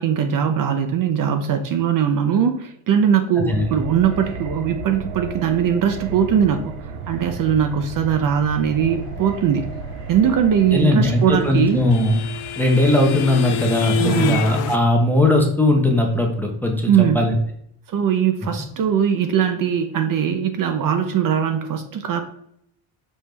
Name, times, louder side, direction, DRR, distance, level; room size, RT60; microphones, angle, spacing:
voice 1, 0.0-6.7 7.1-9.7 10.1-11.8 14.0-14.5 16.9-17.3 17.9-22.2, right 8 dB, 45° right, 6 dB, 0.5 m, -20 dB
sound 1, 3.5-15.4 15.7-15.8, right 4 dB, 85° right, 0.6 m, -35 dB
voice 2, 10.7-12.2 12.6-17.3, left 1 dB, 5° left, 2 dB, 0.6 m, -18 dB
sound 2, 10.9-14.8, left 12 dB, 75° left, 0.6 m, -27 dB
5.3 x 3.1 x 3.2 m, 0.71 s
cardioid pair, 125°, 48 cm